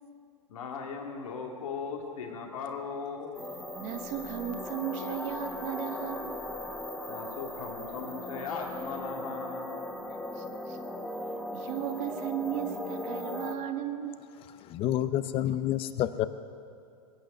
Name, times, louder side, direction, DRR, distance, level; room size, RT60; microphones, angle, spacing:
voice 1, 0.5-3.4 7.1-9.8, left 5 dB, 65° left, 1 dB, 2.2 m, -38 dB
sound 1, 3.3-13.5, left 1 dB, 10° left, 1.4 m, -38 dB
voice 2, 3.8-6.4 10.3-10.8 11.5-14.2, right 11 dB, 40° right, 6 dB, 1.3 m, -36 dB
voice 3, 14.7-16.3, left 12 dB, 30° left, 14 dB, 0.7 m, -28 dB
22.5 x 8.8 x 6.5 m, 2.5 s
figure-of-eight pair, 105°, 20 cm